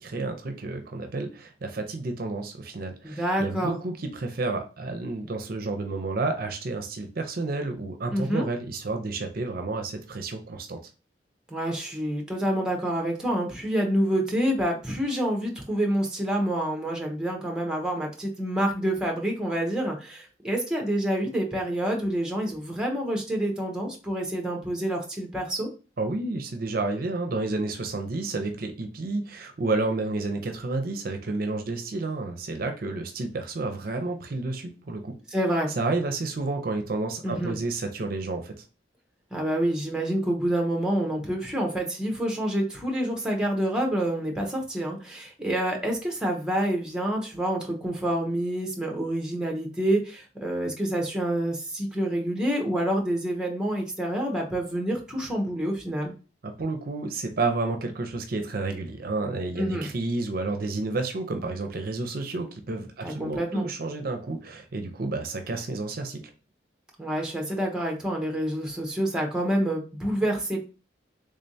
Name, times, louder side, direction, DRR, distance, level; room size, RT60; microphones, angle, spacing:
voice 1, 0.0-10.8 26.0-35.1 35.7-38.6 56.4-66.2, right 3 dB, 55° right, 5 dB, 0.5 m, -30 dB
voice 2, 3.0-3.7 8.1-8.5 11.5-25.7 35.3-35.7 37.2-37.5 39.3-56.1 59.6-59.9 63.0-63.7 67.0-70.7, right 1 dB, 5° right, 1 dB, 0.8 m, -27 dB
3.6 x 3.3 x 2.7 m, 0.33 s
head